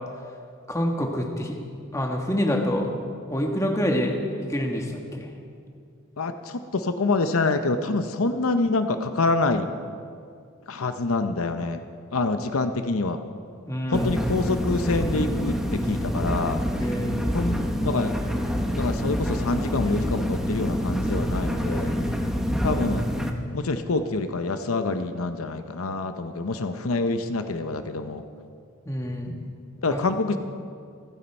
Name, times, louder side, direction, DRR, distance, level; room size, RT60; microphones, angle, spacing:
voice 1, 0.7-1.6 1.9-2.9 3.3-4.2 4.5-5.3 13.7-14.1 16.8-17.2 28.8-29.3 29.9-30.0, equal, 15° left, 1 dB, 1.4 m, -26 dB
voice 2, 6.2-9.7 10.7-11.8 12.1-13.2 13.9-16.9 17.3-18.2 18.6-21.9 22.6-23.1 23.5-28.2 29.3-29.5 29.8-30.4, left 3 dB, 75° left, 8 dB, 0.7 m, -26 dB
sound 1, 13.9-23.3, equal, ahead, 0.8 m, -26 dB
27.5 x 9.5 x 4.5 m, 2.3 s
head